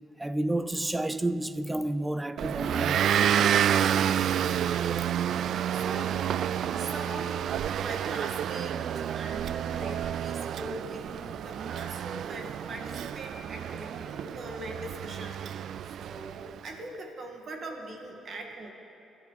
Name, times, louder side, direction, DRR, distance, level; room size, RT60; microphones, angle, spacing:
voice 1, 0.2-3.0 4.5-4.7 5.9-6.1 7.8-7.9 8.7-9.2 9.9-10.0 10.5-10.6, right 1 dB, 10° right, 0.6 m, -31 dB
Motor vehicle (road) / Engine, 2.4-16.6, right 9 dB, 70° right, 0.3 m, -29 dB
voice 2, 3.9-4.6 5.7-6.2 6.8-7.4 7.8-8.8 9.1-15.4 15.8-18.7, right 2 dB, 50° right, 2.2 m, -41 dB
Bowed string instrument, 4.7-7.8, left 9 dB, 80° left, 1.1 m, -52 dB
29.0 x 11.0 x 4.2 m
cardioid pair, 90°, 0 cm